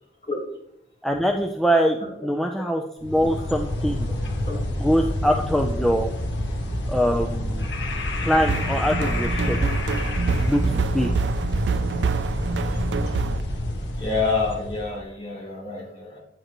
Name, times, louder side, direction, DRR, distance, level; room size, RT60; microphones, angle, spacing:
voice 1, 1.0-4.1 4.8-6.1 6.9-7.7 8.2-9.8 10.3-11.1, equal, ahead, 1 dB, 0.5 m, -23 dB
sound 1, 3.0-14.9, left 1 dB, 85° left, 1.4 m, -27 dB
sound 2, 8.4-13.4, right 5 dB, 80° right, 0.4 m, -27 dB
voice 2, 12.7-13.1 13.9-16.2, left 4 dB, 35° left, -4 dB, 3.8 m, -28 dB
9.1 x 9.0 x 3.0 m, 0.80 s
head